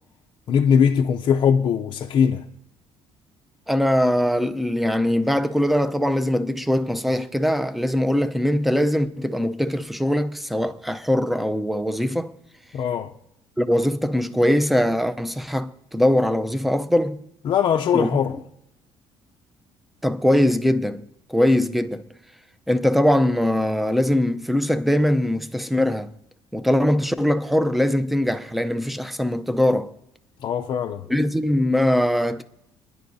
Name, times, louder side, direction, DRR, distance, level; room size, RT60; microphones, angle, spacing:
voice 1, 0.5-2.4 12.7-13.1 17.4-18.4 30.4-31.1, left 7 dB, 50° left, 0.6 m, -20 dB
voice 2, 3.7-12.3 13.6-17.2 17.9-18.1 20.0-22.0 22.7-26.1 26.5-29.9 31.1-32.4, left 1 dB, ahead, 0.6 m, -21 dB
28.5 x 11.0 x 2.7 m
cardioid pair, 150°, 10 cm